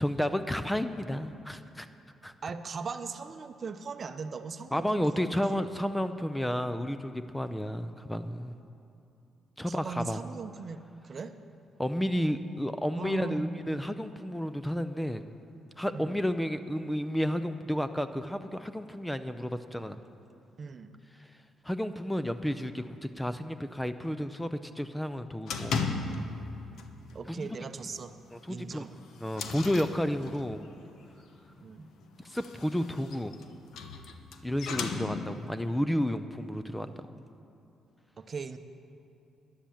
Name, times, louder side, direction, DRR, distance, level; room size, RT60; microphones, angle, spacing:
voice 1, 0.0-1.9 2.2-2.3 4.7-8.5 9.6-10.2 11.8-15.2 15.8-20.0 21.6-25.7 27.3-27.5 28.3-28.9 29.2-30.6 32.2-33.3 34.4-37.1, equal, 5° left, 11 dB, 0.5 m, -31 dB
voice 2, 2.4-5.6 9.6-11.3 13.0-13.8 15.9-16.2 20.6-21.0 26.7-26.9 27.1-28.1 28.5-28.9 31.6-31.9 38.2-38.6, right 4 dB, 45° right, 9 dB, 0.7 m, -39 dB
sound 1, 25.5-26.5 26.8-27.1 27.5-27.6 28.0-28.1 28.7-30.7 32.1-35.5, left 4 dB, 75° left, 0.9 m, -36 dB
11.5 x 10.0 x 7.2 m, 2.8 s
cardioid pair, 90°, 0 cm